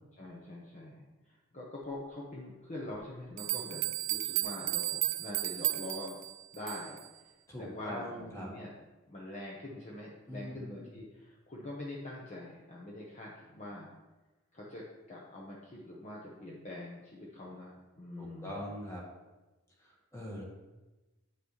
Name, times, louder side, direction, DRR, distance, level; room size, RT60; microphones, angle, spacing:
voice 1, 0.2-6.2 6.5-7.0 7.6-8.7 9.1-13.9 14.5-18.7, left 1 dB, 35° left, -4 dB, 0.9 m, -44 dB
sound 1, 2.9-3.0 3.4-7.1, right 18 dB, 60° right, 0.3 m, -34 dB
voice 2, 7.5-8.5 10.3-10.9 18.2-19.0 19.8-20.4, equal, 15° left, -3 dB, 1.5 m, -42 dB
8.4 x 5.9 x 3.1 m, 1.1 s
head